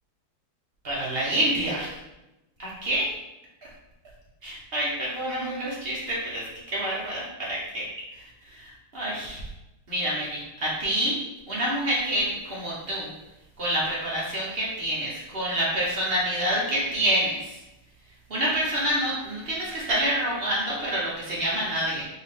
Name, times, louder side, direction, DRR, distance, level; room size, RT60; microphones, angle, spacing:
voice 1, 0.8-1.9 2.6-3.0 4.4-7.9 8.1-9.4 9.9-11.2 11.5-13.1 13.6-17.6 18.3-22.0, right 1 dB, 50° right, -6 dB, 0.7 m, -27 dB
4.6 x 2.7 x 3.5 m, 0.96 s
omnidirectional pair, 2.4 m